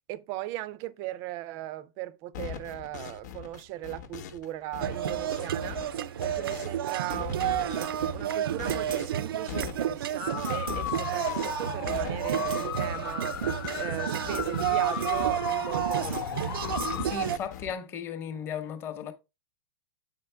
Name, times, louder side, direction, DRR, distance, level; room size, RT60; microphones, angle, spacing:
voice 1, 0.1-5.8 6.2-16.8, right 15 dB, 25° right, 0.4 m, -38 dB
sound 1, 2.3-4.5 4.7-6.8 7.1-14.0 14.2-16.3 16.6-17.7, left 9 dB, 50° left, 0.9 m, -41 dB
sound 2, 4.8-17.4, right 10 dB, 90° right, 0.5 m, -30 dB
sound 3, 10.2-17.1, left 11 dB, 90° left, 0.4 m, -36 dB
voice 2, 17.0-19.1, left 8 dB, 20° left, 0.8 m, -36 dB
8.1 x 5.1 x 3.3 m
supercardioid pair, 165°, 12 cm